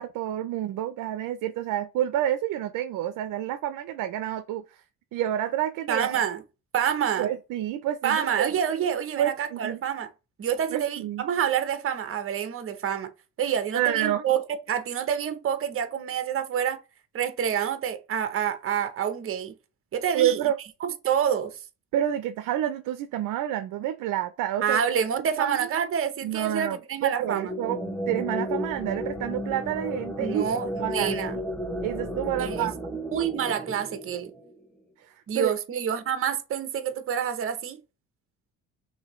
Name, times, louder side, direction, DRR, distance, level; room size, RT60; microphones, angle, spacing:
voice 1, 0.0-4.6 5.1-6.1 7.2-8.5 9.2-9.8 10.7-11.2 13.7-14.2 20.1-20.6 21.9-24.8 25.4-25.7 26.2-27.8 28.1-30.5 30.8-31.2 31.8-32.7 35.1-35.5, right 11 dB, 70° right, 0.5 m, -28 dB
voice 2, 5.9-6.4 6.7-7.3 8.0-10.1 10.4-13.1 13.4-14.4 14.7-16.8 17.1-19.5 19.9-20.4 20.8-21.6 24.6-27.5 30.2-31.3 32.4-32.7 33.1-34.3 35.3-37.8, right 8 dB, 40° right, 0.7 m, -27 dB
sound 1, 27.2-34.6, equal, ahead, 0.6 m, -33 dB
6.2 x 2.7 x 3.0 m
cardioid pair, 125°, 32 cm